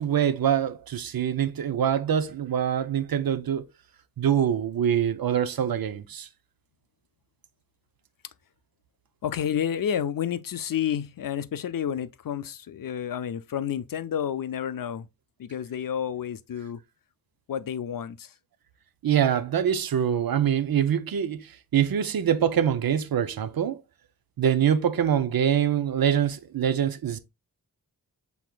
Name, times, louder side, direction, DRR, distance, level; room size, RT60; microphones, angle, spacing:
voice 1, 0.0-3.6 4.2-6.3 19.0-23.8 24.4-27.2, right 9 dB, 75° right, 0.6 m, -24 dB
voice 2, 9.2-15.1 15.4-16.8 17.5-18.3, left 9 dB, 65° left, 0.5 m, -30 dB
6.1 x 3.6 x 2.2 m
wide cardioid pair, 95°, 36 cm